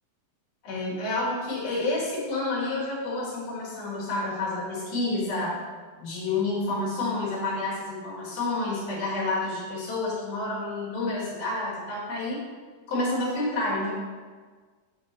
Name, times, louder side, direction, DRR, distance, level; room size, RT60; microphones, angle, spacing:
voice 1, 0.6-5.6 6.0-12.4 12.9-13.9, left 2 dB, 60° left, -7 dB, 3.1 m, -29 dB
8.0 x 5.9 x 3.0 m, 1.5 s
omnidirectional pair, 4.5 m